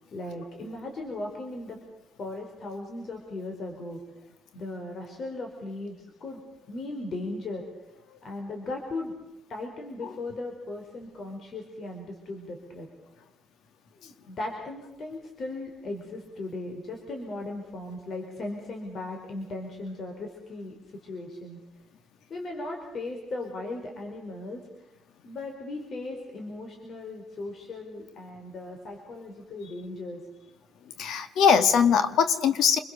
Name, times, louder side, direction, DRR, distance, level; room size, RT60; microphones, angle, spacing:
voice 1, 0.1-1.8 2.2-4.0 4.5-6.4 6.7-7.6 8.2-9.1 9.5-12.9 14.0-20.7 21.0-21.6 22.3-24.6 25.2-30.2, left 2 dB, 55° left, 3 dB, 4.7 m, -37 dB
voice 2, 31.0-32.8, left 7 dB, 80° left, 10 dB, 2.0 m, -21 dB
29.0 x 22.5 x 6.9 m, 0.95 s
cardioid pair, 90°, 0 cm